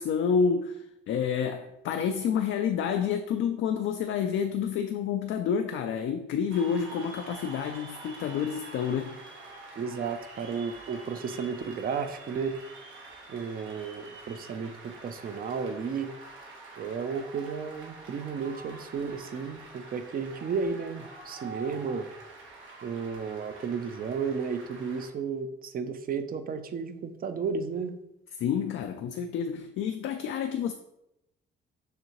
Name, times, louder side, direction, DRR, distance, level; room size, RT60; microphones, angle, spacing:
voice 1, 0.0-9.2 28.4-30.7, left 7 dB, 75° left, 6 dB, 0.4 m, -29 dB
Cheering / Applause, 6.5-25.1, right 3 dB, 80° right, 1.2 m, -47 dB
voice 2, 9.8-12.6 13.3-16.2 16.8-22.1 22.8-28.0, right 5 dB, 45° right, 9 dB, 0.5 m, -33 dB
6.5 x 2.7 x 3.0 m, 0.84 s
cardioid pair, 90°, 20 cm